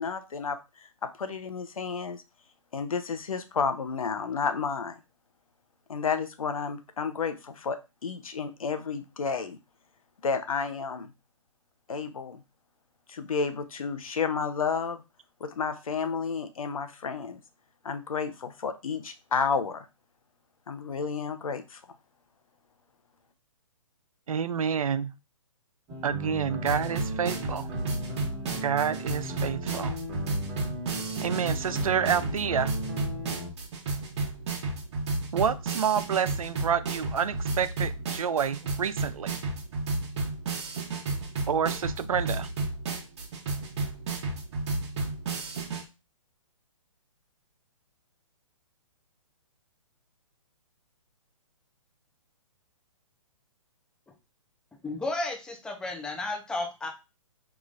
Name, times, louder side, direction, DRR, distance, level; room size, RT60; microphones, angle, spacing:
voice 1, 0.0-2.2 2.7-5.0 5.9-9.6 10.2-11.1 11.9-12.4 13.1-15.0 15.4-17.4 17.8-19.9 20.7-21.8, left 5 dB, 80° left, 9 dB, 0.7 m, -31 dB
voice 2, 24.3-25.1 26.0-27.7 28.6-30.0 31.2-32.7 35.3-39.4 41.5-42.5, right 7 dB, 85° right, 14 dB, 0.4 m, -28 dB
sound 1, 25.9-33.5, equal, 25° right, 1.2 m, -37 dB
sound 2, 26.7-45.8, right 3 dB, 55° right, 1.0 m, -32 dB
voice 3, 54.8-56.9, left 2 dB, 5° left, 4 dB, 0.4 m, -33 dB
4.9 x 2.4 x 2.5 m, 0.27 s
hypercardioid pair, 140°, 17 cm